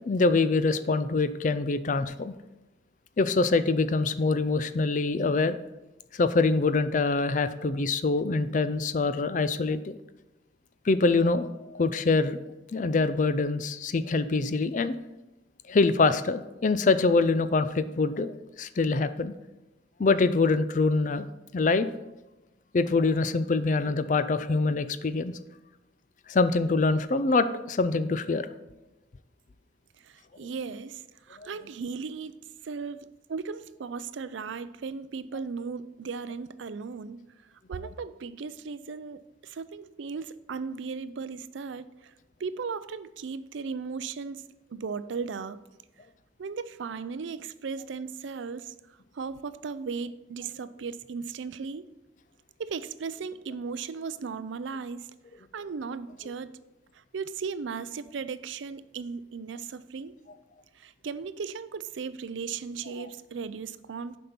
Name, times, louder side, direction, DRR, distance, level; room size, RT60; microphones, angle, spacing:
voice 1, 0.1-2.3 3.2-5.6 6.1-10.0 10.9-12.4 12.7-14.9 15.7-19.3 20.0-21.3 21.5-21.9 22.7-25.3 26.3-28.5 31.4-31.5, left 3 dB, 45° left, 0.4 m, -25 dB
voice 2, 30.0-32.4 32.6-37.2 37.7-42.1 42.4-44.4 44.7-45.6 46.4-48.7 49.1-51.9 52.6-55.1 55.5-56.6 56.9-60.1 60.8-64.2, right 5 dB, 85° right, 0.4 m, -36 dB
7.6 x 5.4 x 5.8 m
head